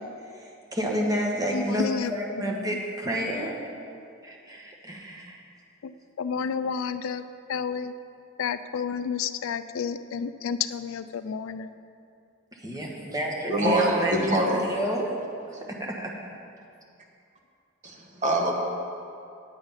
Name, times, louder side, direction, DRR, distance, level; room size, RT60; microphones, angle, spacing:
voice 1, 0.4-3.5 4.2-5.4 12.6-15.1 15.7-16.1, right 1 dB, 20° right, -2 dB, 1.3 m, -29 dB
voice 2, 1.5-2.8 5.8-7.2 7.5-7.9 8.4-11.7, left 6 dB, 75° left, 12 dB, 0.4 m, -31 dB
voice 3, 13.5-14.6 17.8-18.0 18.2-18.5, right 1 dB, 35° right, 0 dB, 1.3 m, -24 dB
9.1 x 7.9 x 5.6 m, 2.5 s
head